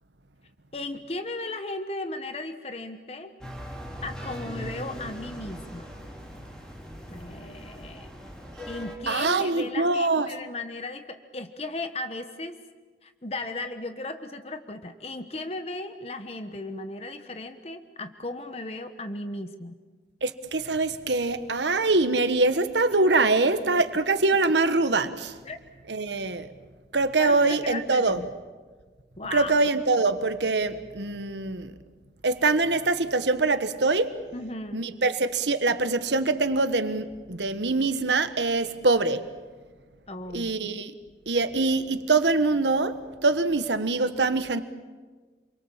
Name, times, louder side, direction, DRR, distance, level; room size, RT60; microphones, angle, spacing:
voice 1, 0.7-3.3 4.0-5.9 7.1-8.1 8.7-12.6 13.0-19.8 25.4-25.6 27.2-28.3 29.2-29.5 34.3-34.8 40.1-40.5, left 2 dB, 35° left, 8 dB, 1.3 m, -36 dB
sound 1, 3.4-9.0, equal, 5° left, 4.4 m, -40 dB
voice 2, 9.1-10.3 20.2-25.3 25.9-26.5 26.9-28.2 29.3-31.7 32.2-34.1 34.7-39.2 40.3-40.9 41.3-44.6, right 3 dB, 90° right, 10 dB, 1.4 m, -24 dB
29.0 x 23.0 x 7.5 m, 1.4 s
head